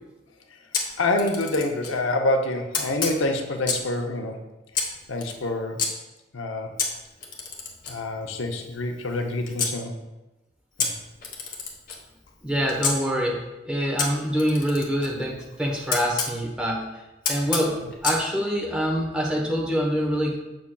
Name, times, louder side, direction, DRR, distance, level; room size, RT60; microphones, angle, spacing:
Camera, 0.7-2.0 2.7-4.0 4.7-5.9 6.8-9.8 10.8-13.0 14.0-16.3 17.2-18.2, left 5 dB, 45° left, 0.9 m, -30 dB
voice 1, 1.0-4.4 5.1-5.8 6.3-6.7 7.9-9.9 10.8-10.9, left 2 dB, 85° left, 4 dB, 0.6 m, -26 dB
voice 2, 12.4-16.8 17.3-17.8 18.0-20.4, equal, 5° right, -2 dB, 0.9 m, -25 dB
6.9 x 6.1 x 2.2 m, 1.1 s
head